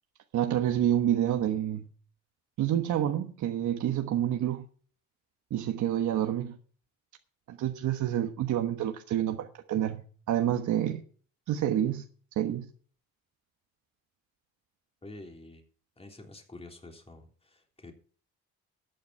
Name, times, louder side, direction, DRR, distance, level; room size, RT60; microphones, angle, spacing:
voice 1, 0.3-1.9 2.6-4.7 5.5-6.6 7.5-11.0 11.5-12.1 12.4-12.7, right 11 dB, 75° right, 1.3 m, -28 dB
voice 2, 15.0-15.6 16.0-17.9, left 2 dB, 20° left, 3.5 m, -48 dB
13.5 x 9.3 x 4.5 m
cardioid pair, 90°, 30 cm